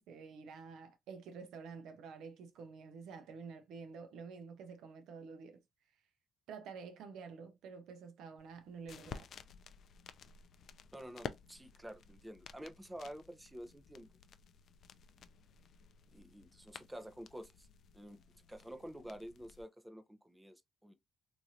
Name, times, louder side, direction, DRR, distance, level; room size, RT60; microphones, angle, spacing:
voice 1, 0.0-5.6 6.5-9.3, right 5 dB, 85° right, 0.5 m, -49 dB
sound 1, 8.4-19.6, left 7 dB, 60° left, 0.3 m, -53 dB
voice 2, 10.9-14.1 16.1-17.7 17.9-18.2 18.5-20.9, equal, 10° right, 0.5 m, -49 dB
3.1 x 2.5 x 2.6 m
cardioid pair, 90°, 0 cm